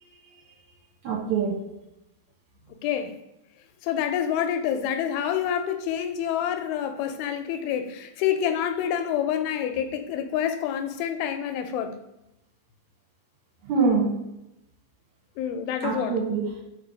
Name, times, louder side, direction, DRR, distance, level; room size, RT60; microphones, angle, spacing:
voice 1, 0.0-0.5 1.0-1.6 13.6-14.1 15.8-16.6, right 5 dB, 65° right, -2 dB, 2.3 m, -25 dB
voice 2, 2.7-3.2 3.8-12.0 15.4-16.1, left 9 dB, 80° left, 8 dB, 2.4 m, -27 dB
5.3 x 4.6 x 5.0 m, 0.90 s
omnidirectional pair, 4.4 m